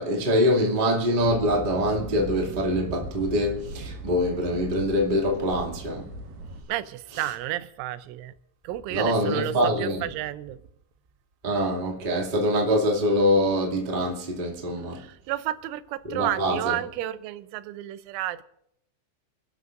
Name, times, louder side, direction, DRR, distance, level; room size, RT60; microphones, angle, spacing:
voice 1, 0.0-6.1 8.9-10.1 11.4-15.0 16.0-16.7, equal, 35° right, 0.7 m, -24 dB
sound 1, 1.2-6.6, right 2 dB, 65° right, 2.5 m, -38 dB
voice 2, 6.7-8.3 8.6-9.5 9.8-10.6 14.9-18.4, right 14 dB, 85° right, 3.1 m, -31 dB
28.5 x 12.0 x 2.5 m
omnidirectional pair, 5.4 m